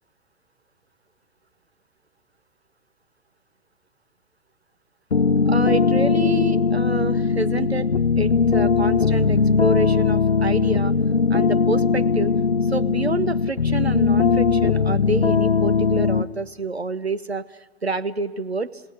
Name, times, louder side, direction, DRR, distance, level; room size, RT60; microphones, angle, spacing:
sound 1, 5.1-16.3, left 5 dB, 80° left, 0.8 m, -19 dB
voice 1, 5.5-7.9 8.2-10.9 11.3-18.8, right 2 dB, 90° right, 11 dB, 1.0 m, -28 dB
27.5 x 17.5 x 9.4 m, 1.4 s
figure-of-eight pair, 110°, 31 cm